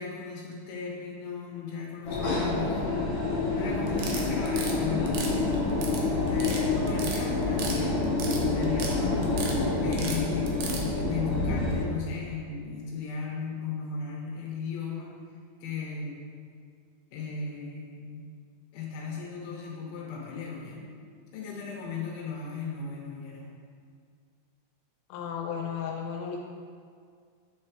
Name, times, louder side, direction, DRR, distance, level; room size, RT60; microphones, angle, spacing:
voice 1, 0.0-2.9 3.6-5.6 6.3-15.1 15.6-16.3 17.1-18.3 18.7-20.8 21.3-23.5, left 5 dB, 70° left, -3 dB, 2.5 m, -36 dB
subway train vibrations, 2.0-11.8, left 3 dB, 50° left, 1.5 m, -27 dB
sound 1, 3.9-4.7 5.1-6.0 6.3-6.6 6.9-7.8 8.0-8.9 9.2-9.6 9.9-10.8, right 5 dB, 80° right, 1.7 m, -35 dB
voice 2, 25.1-26.4, left 7 dB, 85° left, -1 dB, 2.5 m, -34 dB
8.3 x 4.3 x 3.2 m, 2.1 s
omnidirectional pair, 4.3 m